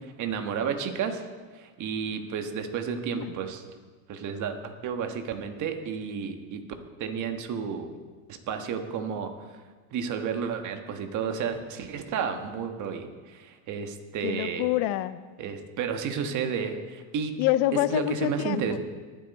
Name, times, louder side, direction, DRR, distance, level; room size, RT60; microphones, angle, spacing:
voice 1, 0.2-1.2 1.5-3.6 4.1-6.6 7.0-7.9 8.5-9.3 9.9-14.7 15.4-17.4 17.9-18.8, right 6 dB, 45° right, 6 dB, 1.5 m, -31 dB
voice 2, 14.2-15.2 17.4-18.8, left 15 dB, 60° left, 15 dB, 0.6 m, -26 dB
20.0 x 7.9 x 4.2 m, 1.5 s
supercardioid pair, 135°, 43 cm